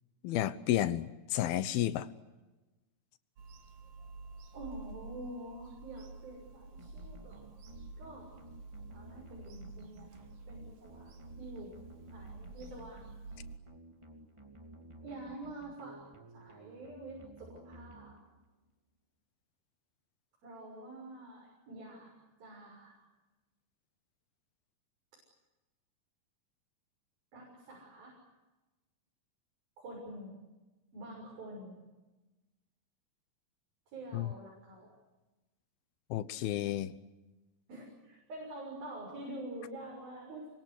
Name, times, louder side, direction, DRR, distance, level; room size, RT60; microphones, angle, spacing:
voice 1, 0.2-2.1 34.1-34.3 36.1-36.9, left 13 dB, 80° left, 2.9 m, -31 dB
Bird vocalization bird call bird song / Telephone, 3.4-13.6, right 3 dB, 55° right, 3.3 m, -50 dB
voice 2, 4.5-7.4 8.0-8.3 8.9-11.1 11.4-11.7 12.1-13.0 15.0-18.2 20.4-23.0 27.3-28.2 29.8-30.4 30.9-31.8 33.9-34.9 37.7-40.5, right 1 dB, 70° right, 8.3 m, -47 dB
sound 1, 6.8-18.6, right 1 dB, 10° right, 1.8 m, -55 dB
27.5 x 24.0 x 8.3 m
omnidirectional pair, 4.3 m